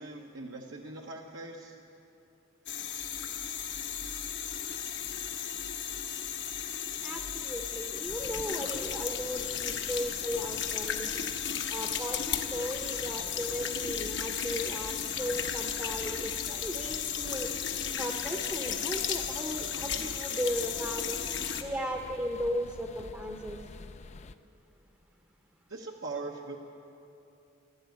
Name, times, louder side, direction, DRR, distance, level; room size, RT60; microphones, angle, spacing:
voice 1, 0.0-1.8 25.7-26.6, right 3 dB, 65° right, 0 dB, 0.9 m, -41 dB
sound 1, 2.7-21.6, left 8 dB, 60° left, 0.9 m, -35 dB
voice 2, 7.0-11.2 11.7-17.5 18.0-21.2 21.5-23.6, equal, 15° right, 2 dB, 0.8 m, -36 dB
sound 2, 8.1-24.4, left 3 dB, 35° left, 0.4 m, -49 dB
13.0 x 12.0 x 9.1 m, 2.8 s
head